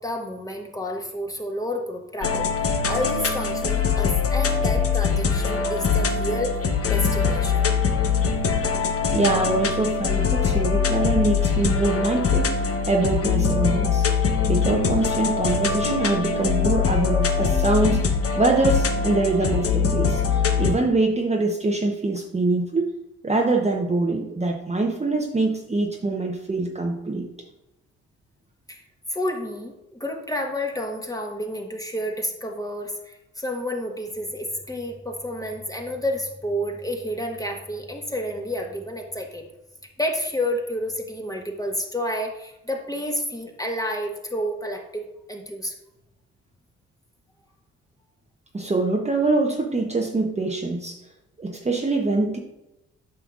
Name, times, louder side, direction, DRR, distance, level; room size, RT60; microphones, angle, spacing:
voice 1, 0.0-6.6 6.9-7.7 28.7-28.8 29.1-39.4 40.0-45.7, equal, 10° left, 2 dB, 1.5 m, -30 dB
sound 1, 2.2-20.7, left 6 dB, 45° left, 1.0 m, -22 dB
voice 2, 9.1-12.6 12.9-14.0 14.5-22.9 23.2-27.3 48.5-51.0 51.4-52.4, right 2 dB, 20° right, 1 dB, 1.0 m, -24 dB
9.1 x 5.7 x 2.5 m, 0.92 s
hypercardioid pair, 45°, 33 cm